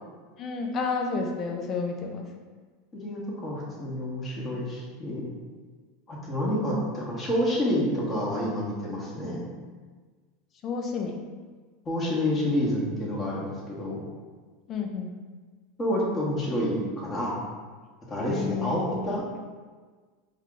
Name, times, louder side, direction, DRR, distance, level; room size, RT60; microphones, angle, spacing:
voice 1, 0.4-2.3 10.6-11.3 14.7-15.1 18.3-19.2, left 4 dB, 40° left, 2 dB, 0.6 m, -31 dB
voice 2, 2.9-5.2 6.1-9.5 11.8-14.1 15.8-17.3 18.1-19.2, left 1 dB, 25° left, -5 dB, 1.2 m, -28 dB
4.2 x 2.4 x 3.8 m, 1.4 s
hypercardioid pair, 100°, 0 cm